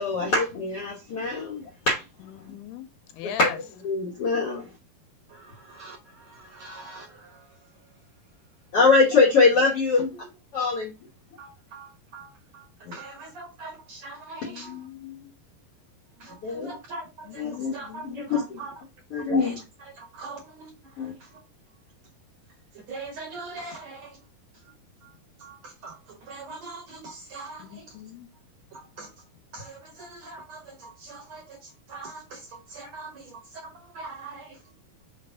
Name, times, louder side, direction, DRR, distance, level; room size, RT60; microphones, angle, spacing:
voice 1, 0.0-2.0 3.2-4.7 8.7-10.1 10.5-10.9 12.8-12.9 16.4-16.7 17.4-17.8 18.3-18.4 19.1-19.6 21.0-21.1, left 4 dB, 65° left, 1.4 m, -23 dB
voice 2, 2.2-3.6 14.4-15.3 17.3-18.5 27.6-28.3, left 10 dB, 90° left, 2.7 m, -41 dB
voice 3, 5.3-8.4 10.1-10.2 11.4-14.9 16.2-18.7 19.2-21.4 22.7-24.3 24.5-24.7 25.0-28.0 28.7-29.1 29.5-34.7, right 3 dB, 60° right, 2.0 m, -43 dB
5.7 x 3.3 x 5.6 m
omnidirectional pair, 4.6 m